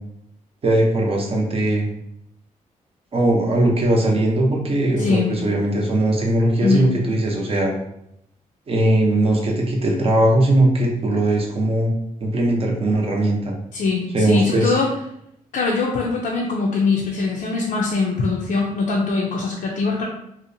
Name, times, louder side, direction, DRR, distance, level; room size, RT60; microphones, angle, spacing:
voice 1, 0.6-1.9 3.1-7.7 8.7-11.9 12.2-13.5 14.1-14.7, right 1 dB, 45° right, 0 dB, 0.6 m, -19 dB
voice 2, 5.0-5.3 6.6-6.9 13.7-14.9 15.5-20.0, left 4 dB, 70° left, -3 dB, 0.4 m, -22 dB
2.7 x 2.0 x 2.5 m, 0.77 s
cardioid pair, 90°, 14 cm